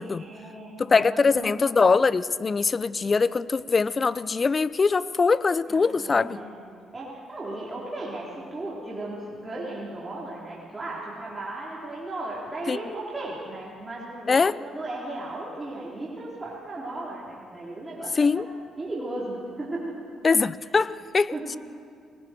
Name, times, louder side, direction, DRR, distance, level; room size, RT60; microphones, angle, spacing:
voice 1, 0.0-1.7 5.7-6.5 6.9-18.5 18.8-19.9 21.3-21.4, right 2 dB, 20° right, -6 dB, 4.0 m, -36 dB
voice 2, 0.8-6.4 12.7-12.8 14.3-14.5 18.2-18.5 20.2-21.3, left 4 dB, 35° left, 17 dB, 0.6 m, -22 dB
29.5 x 20.0 x 4.6 m, 2.2 s
cardioid pair, 90°, 0 cm